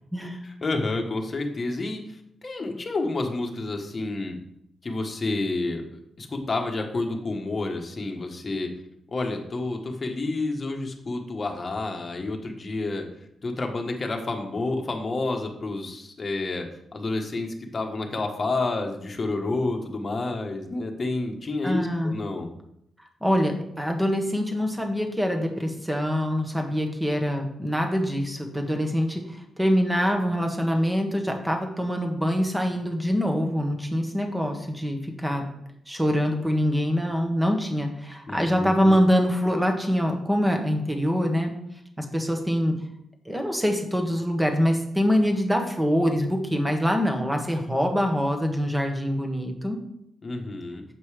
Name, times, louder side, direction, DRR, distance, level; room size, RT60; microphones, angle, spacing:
voice 1, 0.2-4.4 4.8-8.7 9.1-13.1 13.4-22.5 38.3-39.0 50.2-50.8, left 2 dB, 30° left, 3 dB, 1.3 m, -29 dB
voice 2, 21.6-22.1 23.2-35.4 35.9-41.5 42.0-42.7 43.2-49.8, equal, 5° right, 4 dB, 1.3 m, -24 dB
7.7 x 5.3 x 4.9 m, 0.76 s
cardioid pair, 120°, 0 cm